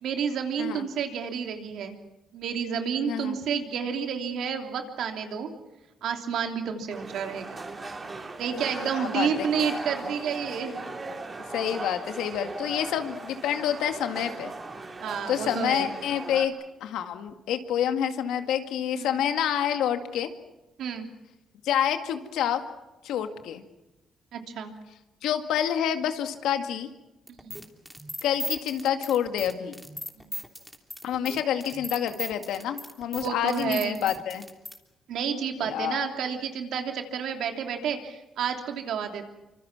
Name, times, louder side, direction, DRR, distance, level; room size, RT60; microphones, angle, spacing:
voice 1, 0.0-2.0 2.3-5.5 6.0-7.7 8.4-10.8 15.0-15.9 18.9-19.1 20.8-21.1 24.3-24.7 27.4-27.6 30.2-30.3 33.2-34.0 35.1-39.3, right 7 dB, 75° right, 4 dB, 3.1 m, -30 dB
voice 2, 3.1-3.4 8.8-10.1 11.5-14.5 15.3-16.5 16.8-20.3 21.6-22.6 23.0-23.6 25.2-26.9 28.2-29.8 31.0-34.5 35.6-36.1, left 9 dB, 85° left, 7 dB, 2.0 m, -28 dB
sound 1, 6.9-16.5, right 3 dB, 30° right, 3.9 m, -38 dB
sound 2, 27.3-34.8, equal, 5° right, 3.2 m, -37 dB
26.0 x 25.5 x 6.1 m, 1.0 s
cardioid pair, 90°, 0 cm